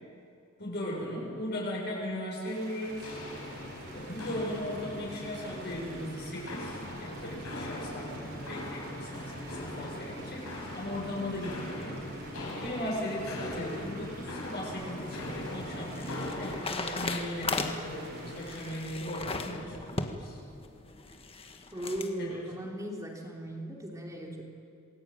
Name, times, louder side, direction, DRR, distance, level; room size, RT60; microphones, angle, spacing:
voice 1, 0.6-3.1 3.9-12.0 12.5-20.4 22.2-22.3, left 1 dB, 50° left, -3 dB, 7.5 m, -37 dB
sound 1, 2.4-18.8, right 2 dB, 50° right, 5.9 m, -50 dB
Walk footsteps, 2.8-16.7, left 1 dB, 85° left, 6.6 m, -40 dB
sound 2, 14.8-22.1, left 3 dB, 25° left, 1.6 m, -38 dB
voice 2, 21.7-24.4, right 1 dB, 15° right, -1 dB, 3.3 m, -37 dB
27.5 x 21.0 x 9.2 m, 2.5 s
head